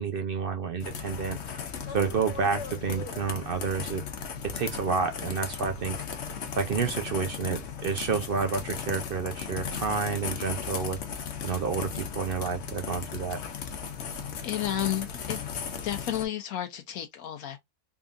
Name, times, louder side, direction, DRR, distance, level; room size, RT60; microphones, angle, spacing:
voice 1, 0.0-1.6 1.9-4.0 4.5-11.0 11.4-13.4, right 5 dB, 60° right, 0.6 m, -30 dB
sound 1, 0.8-16.3, left 7 dB, 55° left, 1.0 m, -36 dB
voice 2, 14.4-15.4 15.8-17.6, left 11 dB, 80° left, 1.0 m, -32 dB
3.7 x 3.5 x 2.5 m
omnidirectional pair, 1.5 m